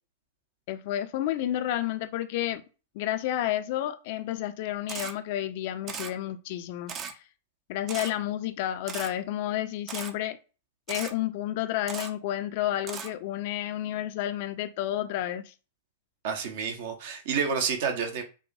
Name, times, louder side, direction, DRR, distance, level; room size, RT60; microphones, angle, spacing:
voice 1, 0.7-2.6 2.9-7.2 7.7-10.4 10.9-15.5, left 12 dB, 55° left, 0.4 m, -31 dB
Camera, 4.9-5.1 5.9-6.1 6.9-7.1 7.9-8.1 8.9-9.1 9.9-10.1 10.9-11.1 11.9-12.1 12.9-13.1, right 6 dB, 30° right, 0.5 m, -36 dB
voice 2, 16.2-18.2, right 6 dB, 60° right, 0.8 m, -29 dB
4.7 x 2.1 x 2.6 m
figure-of-eight pair, 100°, 0 cm